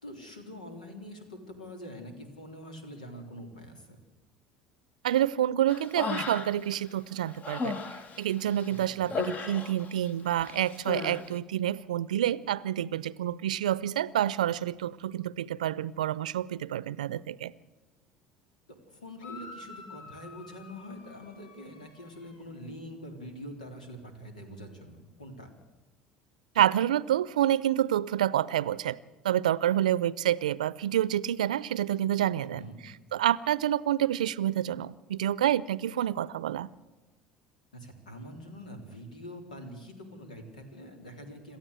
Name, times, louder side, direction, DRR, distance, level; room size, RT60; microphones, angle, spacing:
voice 1, 0.0-3.9 8.9-9.2 18.9-25.5 32.4-32.8 37.7-41.6, equal, 85° left, 6 dB, 3.7 m, -44 dB
voice 2, 5.0-7.8 8.2-17.5 26.6-29.0 29.2-36.7, right 11 dB, 80° right, 21 dB, 0.6 m, -28 dB
Human voice, 5.7-6.8 7.1-10.1 10.4-11.2, left 4 dB, 40° left, 1.8 m, -35 dB
sound 1, 19.2-22.5, left 3 dB, 70° left, 5.2 m, -49 dB
27.5 x 13.0 x 8.2 m, 1.2 s
hypercardioid pair, 70°, 4 cm